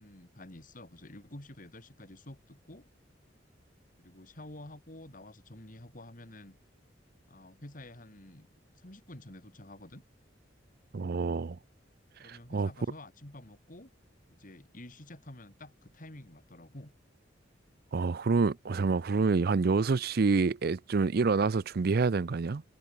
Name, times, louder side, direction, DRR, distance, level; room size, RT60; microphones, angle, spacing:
voice 1, 0.0-2.9 4.0-6.6 7.3-8.5 8.7-10.0 12.2-13.9 14.4-16.9, left 1 dB, 45° left, 3.2 m, -49 dB
voice 2, 10.9-11.6 12.2-12.7 17.9-22.6, right 4 dB, 55° right, 0.5 m, -27 dB
head